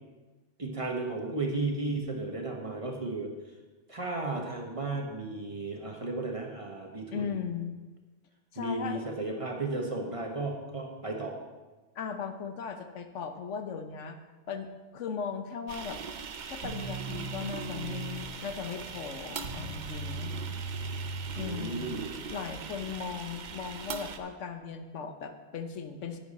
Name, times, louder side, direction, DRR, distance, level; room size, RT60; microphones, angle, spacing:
voice 1, 0.6-3.3 3.9-7.4 8.6-11.4 21.4-22.2, right 2 dB, 30° right, 1 dB, 1.1 m, -34 dB
voice 2, 7.1-7.7 8.5-9.0 12.0-14.2 14.5-16.0 16.5-20.3 21.3-22.0 22.3-26.2, left 6 dB, 85° left, 7 dB, 1.2 m, -37 dB
sound 1, 15.7-24.2, right 6 dB, 50° right, 0.6 m, -41 dB
sound 2, 16.6-22.2, right 3 dB, 75° right, 1.5 m, -39 dB
10.5 x 9.1 x 4.1 m, 1.2 s
omnidirectional pair, 1.2 m